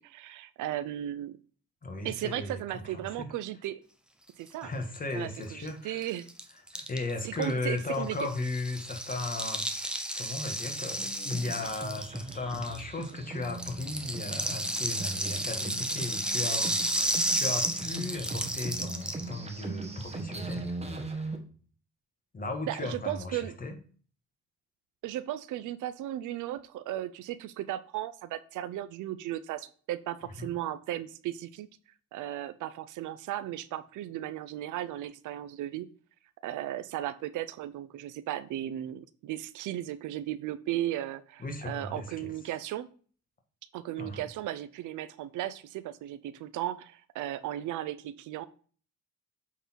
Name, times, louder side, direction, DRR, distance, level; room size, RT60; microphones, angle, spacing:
voice 1, 0.0-1.4 2.0-3.8 4.4-4.7 5.1-6.3 7.2-8.2 22.7-23.5 25.0-31.7 32.1-35.9 36.4-42.9 43.7-48.4, right 13 dB, 85° right, 14 dB, 0.6 m, -36 dB
voice 2, 1.8-3.3 4.6-6.1 6.7-21.4 22.3-23.8 30.2-30.5 41.4-42.3 44.0-44.2, left 2 dB, 30° left, 4 dB, 1.8 m, -36 dB
Rattle (instrument), 5.4-5.5 5.7-5.8 6.0-13.1 13.4-19.3, right 1 dB, 5° right, 1.0 m, -32 dB
sound 1, 11.0-21.4, right 2 dB, 20° right, 1.5 m, -40 dB
8.2 x 3.9 x 4.6 m, 0.42 s
cardioid pair, 90°, 30 cm